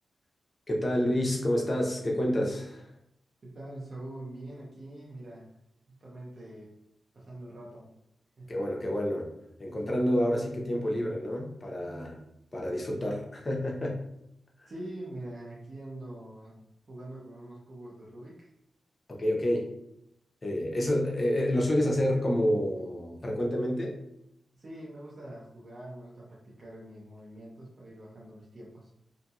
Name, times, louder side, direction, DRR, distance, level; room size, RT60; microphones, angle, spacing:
voice 1, 0.7-2.9 8.5-9.3 9.6-12.2 12.5-14.0 14.6-14.7 19.2-19.7 20.4-24.0, equal, 35° left, -1 dB, 0.7 m, -28 dB
voice 2, 3.4-5.5 5.9-6.7 7.1-7.9 8.4-8.6 14.7-16.6 16.9-18.5 24.6-28.9, right 1 dB, 55° right, -5 dB, 0.8 m, -44 dB
2.7 x 2.6 x 2.4 m, 0.79 s
cardioid pair, 60°, 0 cm